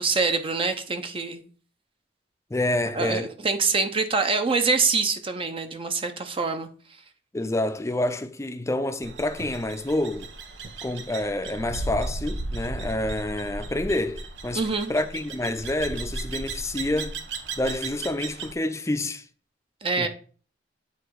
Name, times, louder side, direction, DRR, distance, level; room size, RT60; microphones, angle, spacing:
voice 1, 0.0-1.5 2.9-6.7 14.5-14.9 19.8-20.1, right 4 dB, 30° right, 0.6 m, -25 dB
voice 2, 2.5-3.3 7.3-10.3 10.8-14.6 14.9-17.2 17.6-19.2 20.0-20.1, left 1 dB, 15° left, 0.5 m, -28 dB
sound 1, 9.0-18.5, right 2 dB, 90° right, 0.9 m, -35 dB
8.2 x 2.8 x 4.6 m
head